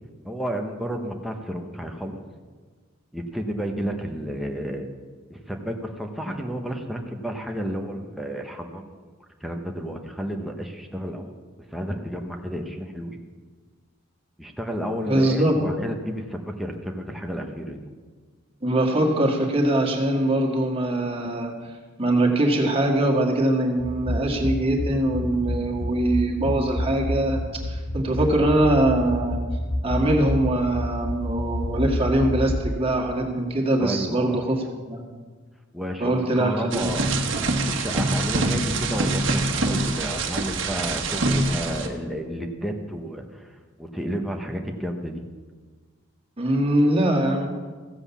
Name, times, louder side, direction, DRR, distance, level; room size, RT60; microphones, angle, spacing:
voice 1, 0.2-2.2 3.1-4.9 5.3-9.0 9.4-11.3 11.7-13.2 14.4-17.9 33.8-34.5 35.7-37.1 37.6-43.5 43.8-45.2, equal, ahead, 2 dB, 0.9 m, -31 dB
voice 2, 15.1-15.6 18.6-21.5 22.0-27.4 27.7-29.4 29.8-34.6 34.9-35.0 36.0-36.9 46.4-47.5, right 1 dB, 30° right, 0 dB, 1.9 m, -22 dB
sound 1, 23.8-32.7, left 1 dB, 80° left, 1.3 m, -29 dB
sound 2, 36.7-41.9, right 2 dB, 60° right, 1.4 m, -25 dB
15.0 x 7.8 x 7.1 m, 1.5 s
head